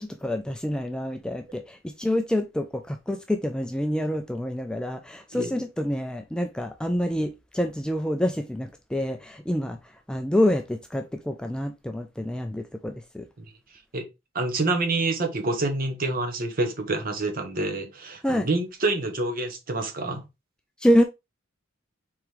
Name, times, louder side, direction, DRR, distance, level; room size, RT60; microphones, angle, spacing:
voice 1, 0.0-9.8 10.1-13.3 18.2-18.5 20.8-21.0, left 1 dB, 5° left, 0.3 m, -27 dB
voice 2, 14.3-20.2, right 2 dB, 45° right, 0.9 m, -27 dB
4.8 x 3.6 x 3.1 m
head